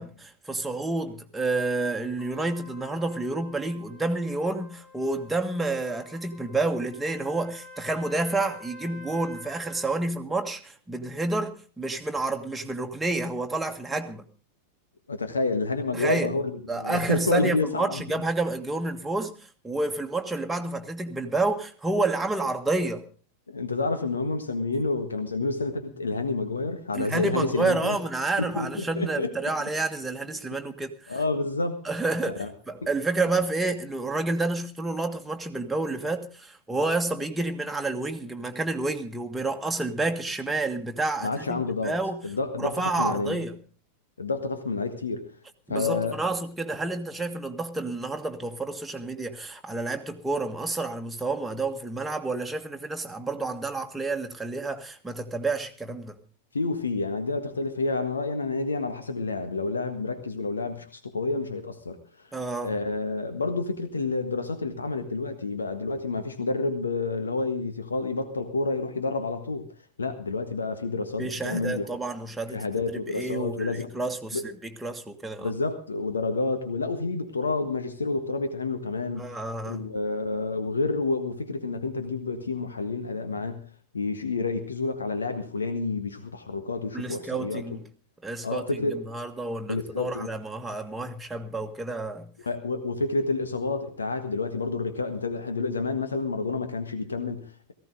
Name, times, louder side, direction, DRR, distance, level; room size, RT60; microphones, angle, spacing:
voice 1, 0.0-14.3 15.9-16.3 16.7-23.1 26.9-31.2 31.8-42.2 42.6-43.6 45.7-56.2 62.3-62.7 71.2-72.7 72.9-75.5 79.2-79.9 86.9-87.8 88.2-92.3, right 2 dB, 5° right, 1.7 m, -29 dB
Trumpet, 2.2-10.0, left 2 dB, 35° left, 6.0 m, -48 dB
voice 2, 15.1-18.0 23.5-28.0 28.4-28.7 29.0-29.5 31.1-31.8 32.4-32.5 41.2-41.9 42.2-43.4 44.2-45.3 45.7-46.2 56.5-62.3 62.6-69.7 70.0-71.9 72.5-73.9 74.3-74.5 75.4-79.4 79.7-83.7 83.9-87.6 88.4-89.0 89.7-90.3 92.4-97.7, left 3 dB, 75° left, 1.6 m, -29 dB
18.0 x 15.0 x 3.8 m
figure-of-eight pair, 90°, 0 cm